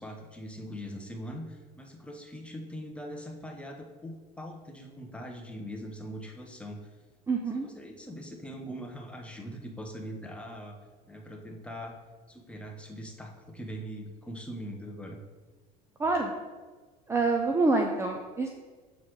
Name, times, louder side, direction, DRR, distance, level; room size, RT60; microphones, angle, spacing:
voice 1, 0.0-6.9 7.5-10.8 11.1-12.0 12.3-15.2, equal, 5° left, 1 dB, 1.1 m, -41 dB
voice 2, 7.3-7.7 16.0-16.3 17.1-18.5, right 3 dB, 15° right, 2 dB, 0.6 m, -26 dB
7.5 x 4.1 x 4.8 m, 1.4 s
supercardioid pair, 110°, 19 cm